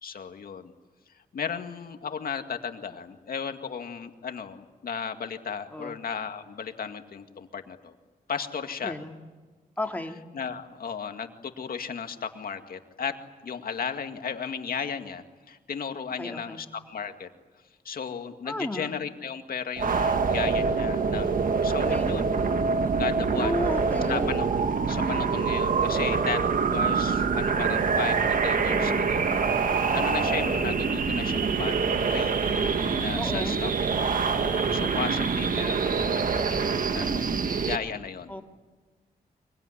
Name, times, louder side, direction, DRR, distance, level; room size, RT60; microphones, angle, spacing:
voice 1, 0.0-0.7 1.3-7.9 8.3-8.9 10.3-13.1 13.4-17.3 17.9-22.3 23.0-23.6 24.1-24.6 24.9-28.2 28.4-29.3 29.9-34.2 34.7-38.3, left 6 dB, 70° left, 6 dB, 2.1 m, -35 dB
voice 2, 8.8-9.2 9.8-10.2 16.2-16.7 18.4-18.9 21.9-22.2 23.4-24.3 28.7-29.1 33.2-33.6 38.3-38.4, left 1 dB, 10° left, 4 dB, 2.4 m, -33 dB
sound 1, 19.8-37.8, right 5 dB, 60° right, 1.6 m, -25 dB
24.0 x 23.0 x 9.9 m, 1.3 s
cardioid pair, 85°, 16 cm